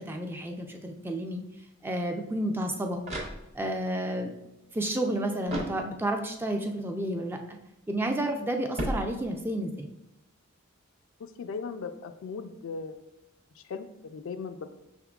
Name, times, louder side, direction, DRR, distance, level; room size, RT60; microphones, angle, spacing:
voice 1, 0.0-1.4 1.8-3.0 3.5-4.3 4.7-7.6 7.9-9.9, right 1 dB, 10° right, 4 dB, 0.3 m, -31 dB
sound 1, 2.9-3.9 5.4-6.3 8.7-9.7, right 1 dB, 30° right, 0.8 m, -36 dB
voice 2, 11.4-12.9 13.7-14.7, left 5 dB, 65° left, 9 dB, 0.4 m, -37 dB
5.8 x 3.6 x 2.3 m, 0.92 s
head